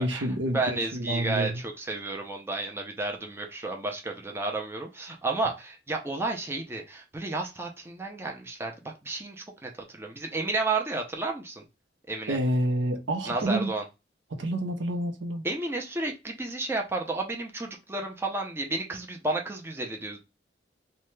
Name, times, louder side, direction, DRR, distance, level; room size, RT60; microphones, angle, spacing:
voice 1, 0.0-1.6 12.3-13.7 14.3-15.5, right 1 dB, 80° right, 0.6 m, -28 dB
voice 2, 0.5-11.6 12.1-12.4 13.3-13.8 15.4-20.2, right 2 dB, 15° right, 0.5 m, -32 dB
2.8 x 2.2 x 3.1 m
head